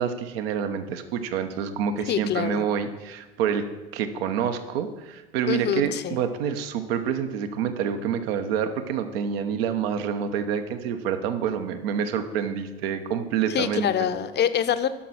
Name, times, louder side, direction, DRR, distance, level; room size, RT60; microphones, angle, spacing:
voice 1, 0.0-3.6 3.9-14.1, right 7 dB, 70° right, 8 dB, 1.1 m, -27 dB
voice 2, 2.1-2.7 5.5-6.2 13.5-14.9, left 9 dB, 35° left, 12 dB, 0.8 m, -25 dB
11.5 x 5.9 x 6.4 m, 1.2 s
hypercardioid pair, 85°, 31 cm